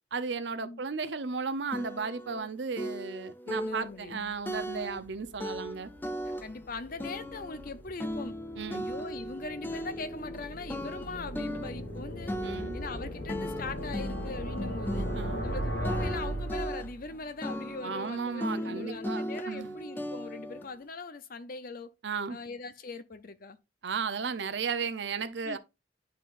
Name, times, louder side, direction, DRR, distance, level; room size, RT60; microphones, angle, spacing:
voice 1, 0.1-5.9 8.6-8.9 12.4-12.8 15.1-15.5 17.8-19.8 22.0-22.4 23.8-25.6, right 5 dB, 65° right, 0.6 m, -35 dB
sound 1, 1.1-1.2 1.7-2.5 2.8-5.1 5.4-6.7 7.0-10.4 10.7-15.6 15.8-17.1 17.4-20.7, equal, 10° left, 0.4 m, -37 dB
voice 2, 3.5-4.2 4.7-5.0 6.2-8.4 8.7-12.3 12.7-15.1 15.4-21.9 22.3-23.6 25.4-25.6, left 3 dB, 50° left, 0.7 m, -41 dB
sound 2, 4.2-17.2, right 1 dB, 70° left, 1.9 m, -38 dB
sound 3, 9.7-20.8, right 1 dB, 35° right, 1.6 m, -57 dB
11.0 x 3.8 x 2.5 m
head